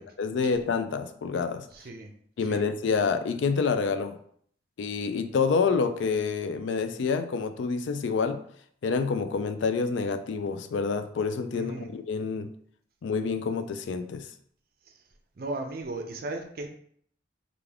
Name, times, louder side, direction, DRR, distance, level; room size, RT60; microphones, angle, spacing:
voice 1, 0.2-1.7 2.4-4.2 4.8-8.4 8.8-12.5 13.0-14.3, left 5 dB, 80° left, 10 dB, 0.3 m, -27 dB
voice 2, 1.7-2.1 2.5-2.6 11.5-11.9 15.4-16.7, right 2 dB, 55° right, 4 dB, 0.5 m, -36 dB
3.4 x 2.5 x 3.4 m, 0.62 s
head